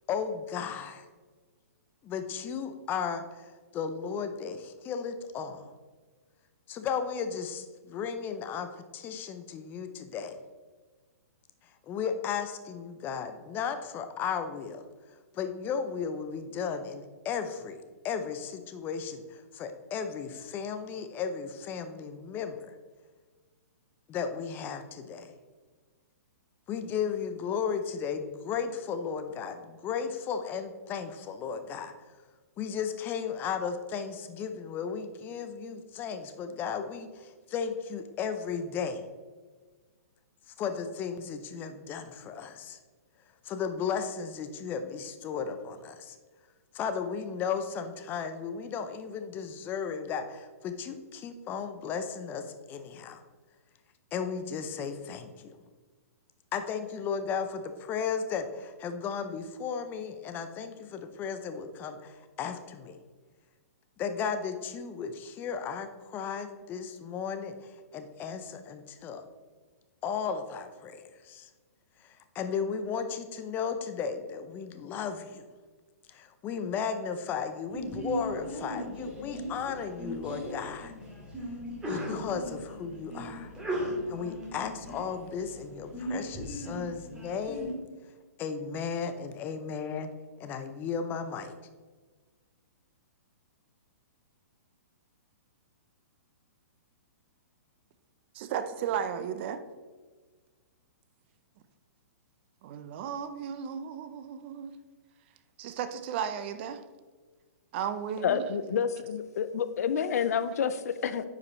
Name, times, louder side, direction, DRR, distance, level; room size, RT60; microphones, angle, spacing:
voice 1, 0.1-1.1 2.0-5.7 6.7-10.4 11.8-14.8 15.3-17.8 18.0-22.8 24.1-25.3 26.7-31.9 32.6-39.1 40.6-42.8 43.4-46.2 46.7-53.2 54.1-55.6 56.5-63.0 64.0-69.2 70.0-71.5 72.0-75.5 76.1-80.9 81.9-83.5 84.1-87.7 88.4-90.1 90.4-91.5, left 6 dB, 20° left, 0.6 m, -35 dB
Sneeze, 77.7-87.7, equal, 10° right, 2.0 m, -38 dB
voice 2, 98.3-99.6 102.6-104.8 105.6-106.8 107.7-108.8, right 8 dB, 45° right, 0.6 m, -35 dB
voice 3, 108.2-111.2, left 7 dB, 65° left, 0.6 m, -29 dB
9.6 x 5.1 x 3.2 m
hypercardioid pair, 140°, 9 cm